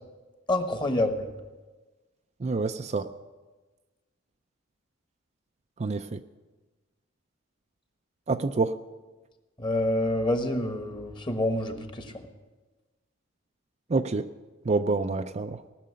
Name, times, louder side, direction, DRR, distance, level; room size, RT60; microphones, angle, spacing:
voice 1, 0.5-1.3 9.6-12.3, left 1 dB, 25° left, 6 dB, 1.3 m, -27 dB
voice 2, 2.4-3.1 5.8-6.2 8.3-8.8 13.9-14.3 14.7-15.6, right 3 dB, 35° right, 8 dB, 0.4 m, -27 dB
18.5 x 6.7 x 9.5 m, 1.2 s
head